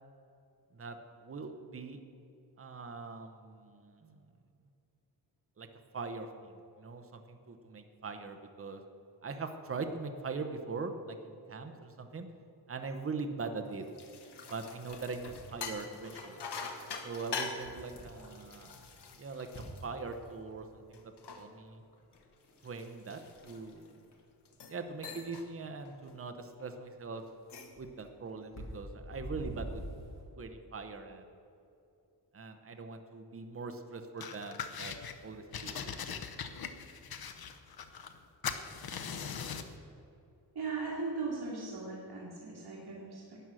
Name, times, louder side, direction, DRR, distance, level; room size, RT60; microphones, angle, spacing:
voice 1, 1.2-2.0 2.6-4.2 5.6-5.7 5.9-8.8 9.2-12.3 12.7-13.8 14.5-16.4 17.0-18.8 19.2-21.0 21.3-21.8 22.6-23.2 23.4-23.9 24.7-27.2 27.8-29.8 30.4-31.3 32.3-34.9 35.2-36.0, right 4 dB, 35° right, 6 dB, 0.9 m, -41 dB
sound 1, 13.7-20.5 20.9-24.0 24.5-24.8 25.0-25.5 25.9-26.1 27.3-27.8, left 5 dB, 80° left, 1.4 m, -45 dB
sound 2, 14.4-15.6 17.2-17.3 17.6-18.2 18.5-18.9 19.4-20.6 21.1-21.2 21.8-21.9 22.1-22.5 22.8-23.9 24.1-24.2 24.4-24.5 24.8-25.3 25.6-25.7 26.1-26.2 26.6-26.7 27.2-30.2, equal, 40° left, 2.4 m, -46 dB
sound 3, 34.2-35.2 35.5-38.2 38.4-39.8, left 7 dB, 65° left, 0.9 m, -40 dB
voice 2, 40.6-43.4, right 4 dB, 70° right, -3 dB, 2.3 m, -38 dB
12.5 x 9.0 x 6.3 m, 2.7 s
wide cardioid pair, 135°, 40 cm